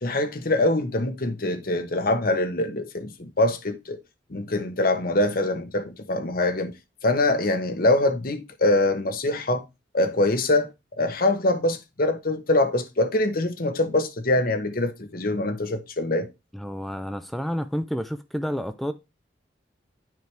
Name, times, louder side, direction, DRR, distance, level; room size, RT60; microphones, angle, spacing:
voice 1, 0.0-4.0 4.3-6.7 7.0-9.6 9.9-10.7 11.0-16.3, left 2 dB, 50° left, 1.0 m, -24 dB
voice 2, 16.5-18.9, equal, ahead, 0.4 m, -30 dB
9.2 x 4.7 x 3.3 m
head